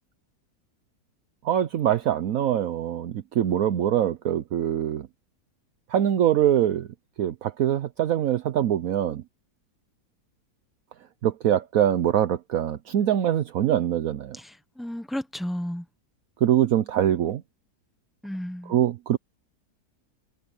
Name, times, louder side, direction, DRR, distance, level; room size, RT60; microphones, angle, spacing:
voice 1, 1.4-5.1 5.9-6.9 7.2-9.2 11.2-14.4 16.4-17.4 18.7-19.2, right 11 dB, 65° right, 1.1 m, -23 dB
voice 2, 14.3-15.8 18.2-18.8, equal, ahead, 1.0 m, -33 dB
omnidirectional pair, 1.7 m